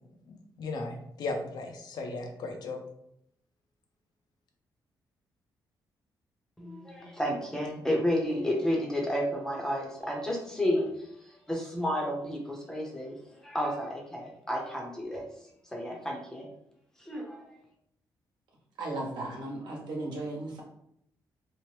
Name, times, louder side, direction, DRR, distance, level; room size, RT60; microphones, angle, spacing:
voice 1, 0.3-2.8, left 3 dB, 65° left, 3 dB, 0.5 m, -36 dB
voice 2, 6.6-15.2 15.7-16.5 17.0-17.4, equal, 10° left, 0 dB, 0.6 m, -31 dB
voice 3, 18.8-20.6, right 2 dB, 75° right, -3 dB, 0.9 m, -36 dB
2.9 x 2.0 x 3.1 m, 0.74 s
cardioid pair, 135°, 8 cm